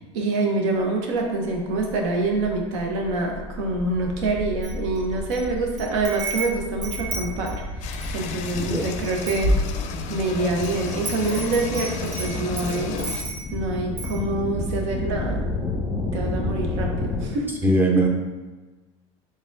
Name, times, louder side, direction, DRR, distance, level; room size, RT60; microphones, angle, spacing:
voice 1, 0.1-9.5 10.1-13.0 13.5-15.4 16.1-17.5, right 2 dB, 80° right, 1 dB, 0.8 m, -26 dB
sound 1, 1.2-17.3, left 2 dB, 10° left, 0.9 m, -32 dB
Wind chime, 4.6-5.4 5.8-8.2 8.7-8.8 9.0-10.1 10.6-13.6 14.0-14.2, right 1 dB, 50° right, 1.1 m, -29 dB
sound 2, 7.8-13.2, left 6 dB, 50° left, 0.4 m, -33 dB
voice 2, 17.6-18.1, right 2 dB, 15° right, 1 dB, 0.6 m, -19 dB
4.1 x 3.7 x 2.5 m, 1.2 s
supercardioid pair, 110°, 15 cm